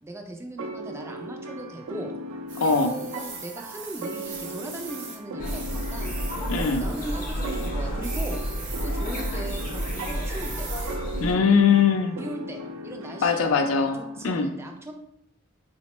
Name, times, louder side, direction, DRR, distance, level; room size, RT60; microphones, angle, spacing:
voice 1, 0.0-2.1 2.6-6.2 6.7-8.4 8.8-10.7 12.2-14.9, right 1 dB, 15° right, 3 dB, 0.3 m, -38 dB
sound 1, 0.6-14.3, right 1 dB, 85° right, 0.4 m, -38 dB
sound 2, 2.5-5.2 5.4-7.7 8.0-11.0, right 4 dB, 60° right, 0.8 m, -41 dB
voice 2, 2.6-2.9 6.5-6.8 11.2-12.2 13.2-14.0 14.2-14.5, left 6 dB, 90° left, 6 dB, 0.4 m, -21 dB
sound 3, 5.4-11.4, equal, 40° left, 0.6 m, -30 dB
4.3 x 2.0 x 2.9 m, 0.77 s
head